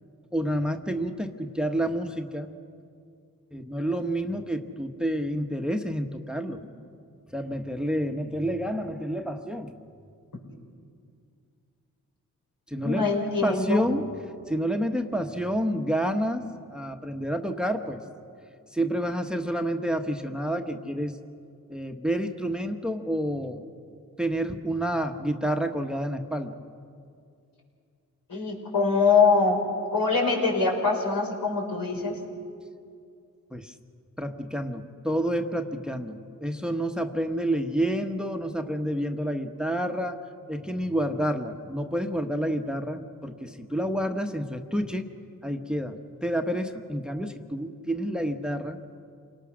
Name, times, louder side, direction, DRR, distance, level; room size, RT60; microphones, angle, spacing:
voice 1, 0.3-2.5 3.5-6.6 7.3-9.7 12.7-13.0 13.4-14.0 14.5-18.0 18.7-21.2 21.7-23.6 24.2-26.6 33.5-33.7 34.2-40.2 40.5-45.1 45.4-48.8, equal, ahead, 6 dB, 1.2 m, -29 dB
voice 2, 12.8-13.9 28.3-29.6 29.9-32.2, left 4 dB, 75° left, 0 dB, 5.2 m, -23 dB
28.5 x 19.0 x 6.3 m, 2.4 s
cardioid pair, 60°, 34 cm